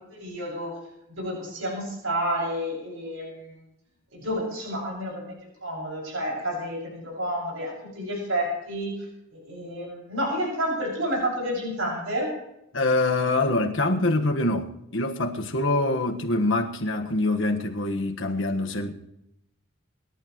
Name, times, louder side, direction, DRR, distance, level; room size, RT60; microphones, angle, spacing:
voice 1, 0.1-0.8 1.2-3.5 4.1-5.3 5.6-9.1 9.3-12.4, equal, 75° right, 6.2 m, -30 dB
voice 2, 12.7-18.9, left 2 dB, 65° left, 1.5 m, -25 dB
27.0 x 11.5 x 3.1 m
head